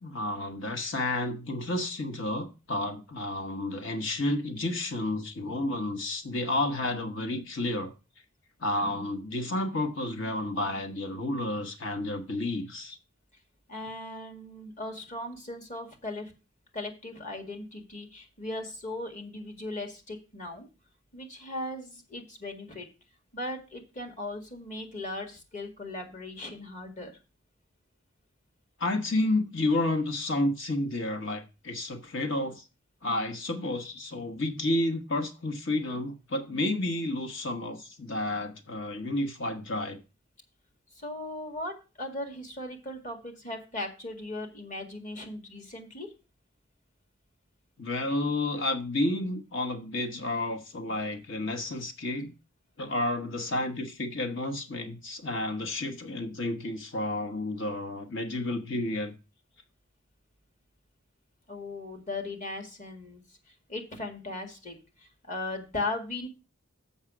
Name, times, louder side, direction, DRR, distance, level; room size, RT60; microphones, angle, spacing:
voice 1, 0.0-7.9 8.6-13.0 28.8-32.6 33.0-40.0 47.8-52.3 52.8-59.1, left 2 dB, 60° left, 1.2 m, -31 dB
voice 2, 13.7-16.3 16.7-20.7 21.1-22.9 23.3-27.1 41.0-46.1 61.5-63.2 63.7-66.3, left 2 dB, 40° left, 1.8 m, -38 dB
7.3 x 5.6 x 6.0 m
head